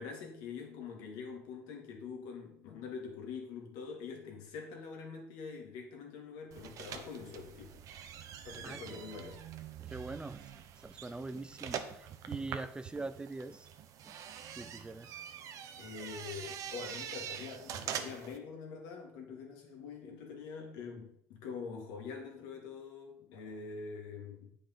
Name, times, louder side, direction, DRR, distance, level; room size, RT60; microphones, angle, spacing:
voice 1, 0.0-7.8 8.4-9.4 15.8-24.5, left 5 dB, 80° left, 2.3 m, -45 dB
sound 1, 6.5-18.4, right 9 dB, 60° right, 0.9 m, -44 dB
voice 2, 8.6-9.0 9.8-13.7 14.0-14.1 14.4-15.2, right 3 dB, 15° right, 0.5 m, -43 dB
8.7 x 5.2 x 5.7 m
supercardioid pair, 100°, 6 cm